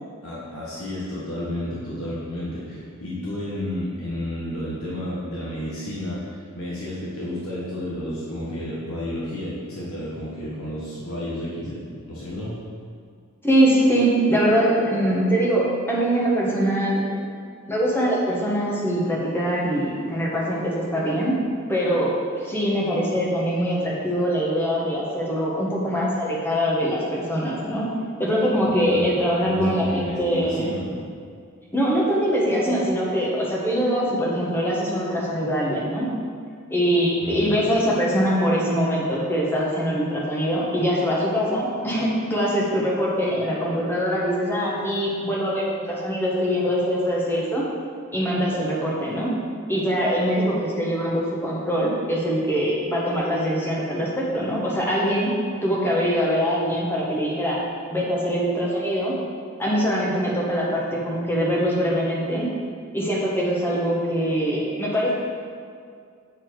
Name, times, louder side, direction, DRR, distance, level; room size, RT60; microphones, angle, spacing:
voice 1, 0.2-12.6 28.8-29.1 29.5-31.0 37.2-37.5, left 1 dB, 90° left, -8 dB, 1.4 m, -31 dB
voice 2, 13.4-17.1 17.7-21.3 21.7-27.9 28.2-30.6 31.7-36.1 36.7-47.6 48.1-49.3 49.7-55.3 55.6-57.6 57.9-59.2 59.6-62.5 62.9-65.1, equal, 10° left, -5 dB, 1.2 m, -23 dB
7.9 x 4.3 x 4.7 m, 2.2 s
head